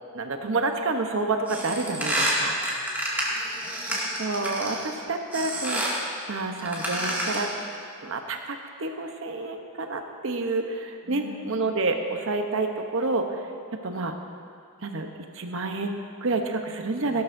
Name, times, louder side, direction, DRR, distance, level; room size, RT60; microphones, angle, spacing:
voice 1, 0.1-2.6 4.2-7.5 8.0-13.4 13.8-14.1 14.8-15.1 15.3-17.2, right 3 dB, 65° right, 5 dB, 0.9 m, -29 dB
sound 1, 1.5-4.9 5.3-6.0 6.6-7.6, right 1 dB, 10° right, 2.2 m, -29 dB
voice 2, 2.7-3.8 11.0-11.7 17.0-17.2, left 3 dB, 60° left, -3 dB, 2.1 m, -48 dB
17.0 x 12.5 x 2.7 m, 2.3 s
head